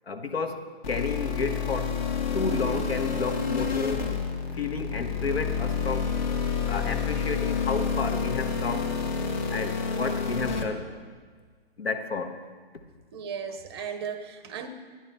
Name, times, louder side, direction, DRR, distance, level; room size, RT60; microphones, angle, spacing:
voice 1, 0.1-2.0 2.3-4.2 4.5-6.2 6.7-8.9 9.5-10.9 11.8-12.4, left 4 dB, 75° left, 6 dB, 1.3 m, -31 dB
sound 1, 0.8-10.6, left 6 dB, 45° left, 1.4 m, -29 dB
voice 2, 13.1-14.7, right 7 dB, 25° right, 9 dB, 0.6 m, -36 dB
12.0 x 10.5 x 4.3 m, 1.5 s
figure-of-eight pair, 135°, 31 cm